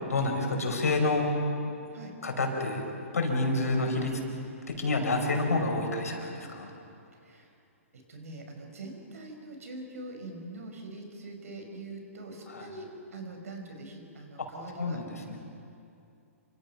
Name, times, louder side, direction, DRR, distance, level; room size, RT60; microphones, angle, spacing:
voice 1, 0.0-1.4 2.2-2.9 3.1-4.2 4.7-6.7 12.5-12.7 14.8-15.4, left 2 dB, 85° left, 2 dB, 5.4 m, -28 dB
voice 2, 7.2-7.6 7.9-15.0, right 2 dB, 75° right, 3 dB, 5.6 m, -43 dB
28.0 x 25.5 x 5.9 m, 2.6 s
hypercardioid pair, 130°, 8 cm